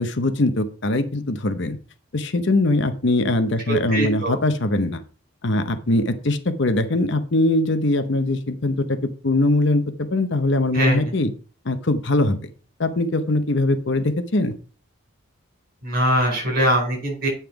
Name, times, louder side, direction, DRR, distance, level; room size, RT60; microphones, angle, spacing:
voice 1, 0.0-1.8 2.1-5.0 5.4-11.3 11.6-12.5 12.8-14.5, left 2 dB, 55° left, 10 dB, 0.8 m, -21 dB
voice 2, 3.9-4.4 10.7-11.0 15.8-17.3, equal, 45° right, 0 dB, 4.8 m, -21 dB
8.7 x 5.8 x 4.6 m, 0.39 s
head